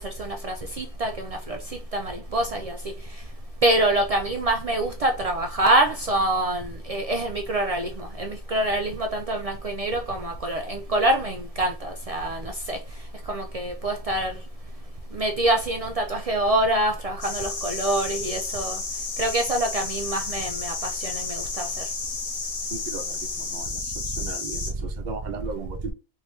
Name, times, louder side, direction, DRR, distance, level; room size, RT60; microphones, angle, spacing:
voice 1, 0.8-1.6 1.9-2.7 3.6-12.8 13.3-14.3 15.1-18.8 19.2-21.7, right 1 dB, 75° right, 0.3 m, -25 dB
sound 1, 17.2-24.7, left 4 dB, 75° left, 1.2 m, -32 dB
voice 2, 22.7-25.9, right 4 dB, 50° right, 0.7 m, -37 dB
3.3 x 2.7 x 3.1 m
omnidirectional pair, 1.2 m